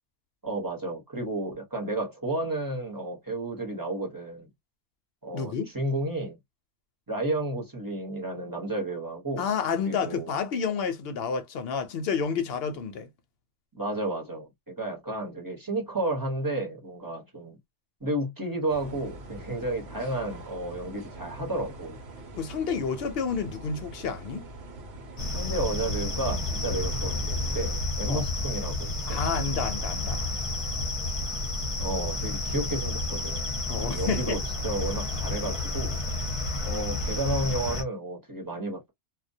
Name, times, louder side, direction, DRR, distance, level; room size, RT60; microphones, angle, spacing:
voice 1, 0.4-4.5 5.2-6.4 7.1-9.5 9.8-10.3 13.7-17.6 18.0-22.0 25.3-29.3 31.8-36.0 36.6-38.9, right 2 dB, 20° right, 0.8 m, -32 dB
voice 2, 5.3-5.7 9.4-13.1 22.3-24.4 28.1-28.3 29.1-30.2 33.7-34.4, left 6 dB, 65° left, 0.8 m, -30 dB
sound 1, 18.7-27.8, right 2 dB, 70° right, 0.9 m, -44 dB
sound 2, 25.2-37.8, left 2 dB, 35° left, 0.6 m, -30 dB
2.2 x 2.1 x 2.6 m
omnidirectional pair, 1.1 m